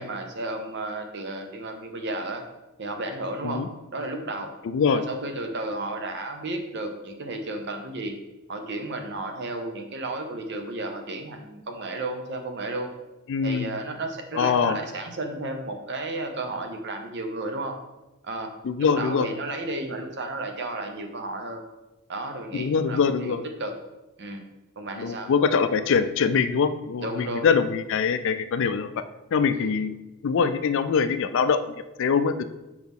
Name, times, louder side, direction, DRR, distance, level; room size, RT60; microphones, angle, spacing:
voice 1, 0.0-2.4 2.8-3.6 3.9-4.5 4.9-8.2 8.5-12.9 13.4-17.8 18.2-18.5 18.8-21.6 22.1-23.7 24.2-24.4 24.8-25.3 27.0-27.5 29.5-29.7, right 2 dB, 55° right, 5 dB, 0.8 m, -33 dB
voice 2, 4.6-5.0 13.3-13.7 14.3-14.8 18.6-19.3 22.5-23.4 25.0-28.9 29.3-29.9 30.2-31.6 32.0-32.4, left 6 dB, 60° left, 11 dB, 0.4 m, -23 dB
6.0 x 4.7 x 3.6 m, 1.0 s
head